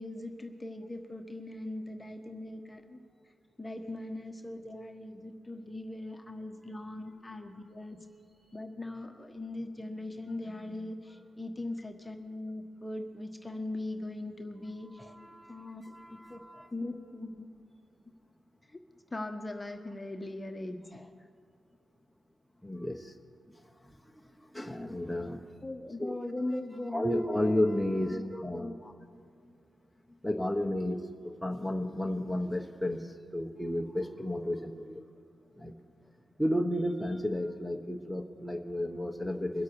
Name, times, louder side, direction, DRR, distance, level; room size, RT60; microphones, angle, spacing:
voice 1, 0.0-3.0 3.6-8.0 8.5-15.1 15.5-17.5 18.7-18.8 19.1-21.1 25.6-27.6 28.1-28.9, left 2 dB, 20° left, 5 dB, 1.3 m, -40 dB
voice 2, 14.8-16.7 22.6-23.1 23.5-25.5 26.0-26.2 26.9-28.7 29.4-29.5 30.1-35.0 35.5-35.7 36.4-39.6, left 1 dB, ahead, 1 dB, 1.3 m, -33 dB
24.0 x 8.2 x 4.8 m, 2.2 s
cardioid pair, 60°, 0 cm